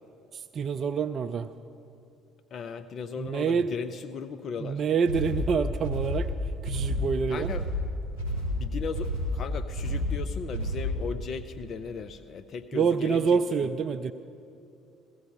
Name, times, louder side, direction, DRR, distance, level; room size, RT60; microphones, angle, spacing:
voice 1, 0.3-1.5 3.2-3.7 4.6-6.3 6.6-7.5 12.7-14.1, right 6 dB, 45° right, 10 dB, 0.4 m, -27 dB
voice 2, 2.5-4.8 7.3-7.6 8.5-13.4, left 5 dB, 45° left, 10 dB, 0.5 m, -37 dB
sound 1, 5.1-11.1, left 1 dB, 75° left, 3.6 m, -30 dB
16.5 x 14.0 x 5.3 m, 2.6 s
figure-of-eight pair, 55°, 0 cm